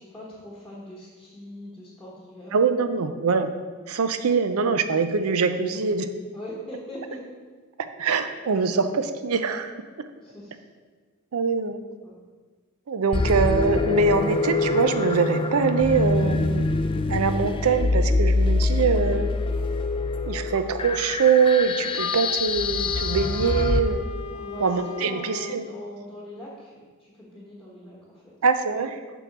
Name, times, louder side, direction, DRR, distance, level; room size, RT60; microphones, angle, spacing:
voice 1, 0.0-2.6 2.9-3.2 6.3-7.3 10.2-10.6 12.0-12.2 24.3-28.3, left 1 dB, 5° left, -6 dB, 1.2 m, -41 dB
voice 2, 2.5-3.5 3.9-6.1 8.0-9.7 11.3-11.8 12.9-16.7 17.1-19.3 20.3-24.0 24.6-25.7 28.4-29.0, right 5 dB, 80° right, 9 dB, 0.5 m, -23 dB
sound 1, 13.1-23.8, left 3 dB, 25° left, 0.3 m, -25 dB
Wind instrument woodwind instrument, 22.0-25.6, left 4 dB, 75° left, 0.6 m, -36 dB
7.0 x 3.8 x 5.9 m, 1.4 s
head